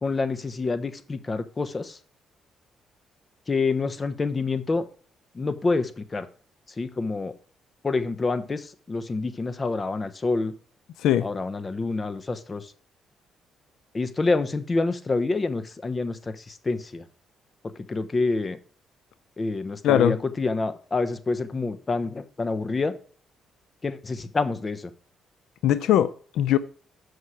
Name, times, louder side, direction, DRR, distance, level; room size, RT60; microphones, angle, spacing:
voice 1, 0.0-2.0 3.5-4.9 5.3-6.3 6.8-7.3 7.8-10.5 11.2-12.7 13.9-17.0 17.9-18.6 19.4-22.9 23.8-24.9, left 3 dB, 30° left, 0.8 m, -27 dB
voice 2, 19.8-20.2 25.6-26.6, left 11 dB, 80° left, 0.4 m, -20 dB
6.5 x 5.6 x 4.8 m
cardioid pair, 90°, 0 cm